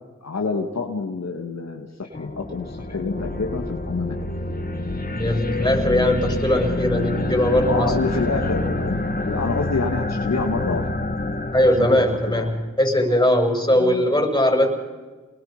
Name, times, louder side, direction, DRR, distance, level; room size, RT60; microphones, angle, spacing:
voice 1, 0.2-4.1 7.7-10.9 11.8-12.1 12.3-12.5 13.7-14.2, left 4 dB, 60° left, 2 dB, 2.4 m, -27 dB
sound 1, 2.1-12.7, left 2 dB, 30° left, 2.8 m, -27 dB
voice 2, 5.1-7.9 11.5-14.7, left 1 dB, 15° left, 2 dB, 7.4 m, -20 dB
29.5 x 22.0 x 5.4 m, 1.3 s
cardioid pair, 50°, 30 cm